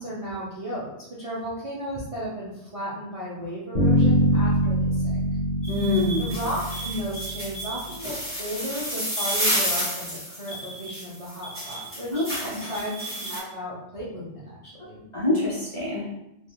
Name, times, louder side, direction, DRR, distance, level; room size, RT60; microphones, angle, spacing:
voice 1, 0.0-5.2 6.2-15.0, equal, 45° right, -7 dB, 0.4 m, -34 dB
Bass guitar, 3.8-7.7, right 1 dB, 55° left, 0.9 m, -23 dB
sound 1, 5.6-13.4, equal, 10° right, 1.4 m, -31 dB
voice 2, 5.7-6.3 12.1-12.6 15.1-16.1, left 2 dB, 35° left, -7 dB, 0.6 m, -25 dB
3.4 x 2.2 x 2.2 m, 0.86 s
omnidirectional pair, 1.2 m